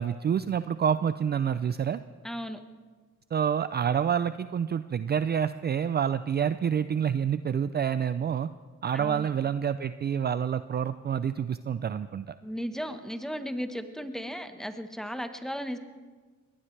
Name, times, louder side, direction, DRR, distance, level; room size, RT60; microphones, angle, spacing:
voice 1, 0.0-2.0 3.3-8.5 8.8-12.3, right 8 dB, 35° right, 13 dB, 0.4 m, -28 dB
voice 2, 2.2-2.6 8.9-9.3 12.4-15.8, equal, ahead, 8 dB, 1.3 m, -35 dB
22.5 x 18.5 x 3.3 m, 1.4 s
cardioid pair, 90°, 30 cm